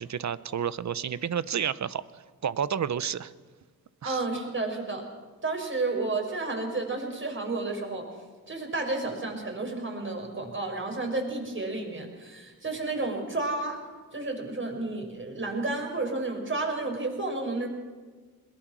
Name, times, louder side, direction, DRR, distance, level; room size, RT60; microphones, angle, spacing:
voice 1, 0.0-3.3 4.0-4.3, right 8 dB, 50° right, 16 dB, 0.9 m, -31 dB
voice 2, 4.0-5.1 5.4-8.1 8.5-13.8 14.1-17.7, right 3 dB, 35° right, 3 dB, 6.1 m, -31 dB
21.0 x 20.0 x 6.3 m, 1.4 s
cardioid pair, 70°, 36 cm